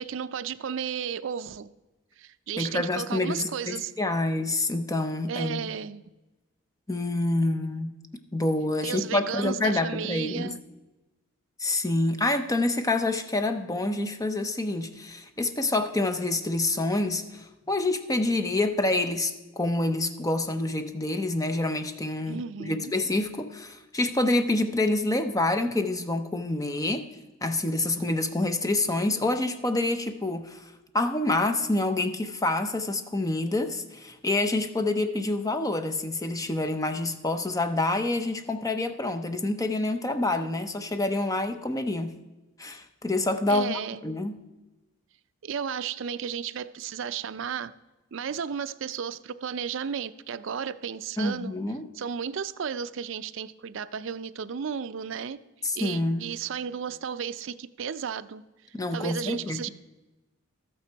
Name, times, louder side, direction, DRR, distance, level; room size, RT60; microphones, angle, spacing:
voice 1, 0.0-1.7 2.2-3.9 5.3-6.0 8.8-10.6 22.3-22.9 43.5-44.0 45.4-47.7 48.1-51.6 51.9-55.4 55.7-58.4 58.9-59.7, right 7 dB, 60° right, 0.4 m, -33 dB
voice 2, 2.6-5.7 6.9-7.9 8.3-10.5 11.6-27.1 27.4-42.1 42.6-44.3 51.2-51.9 55.6-56.3 58.7-59.7, left 2 dB, 15° left, 0.6 m, -27 dB
13.0 x 8.7 x 4.5 m
head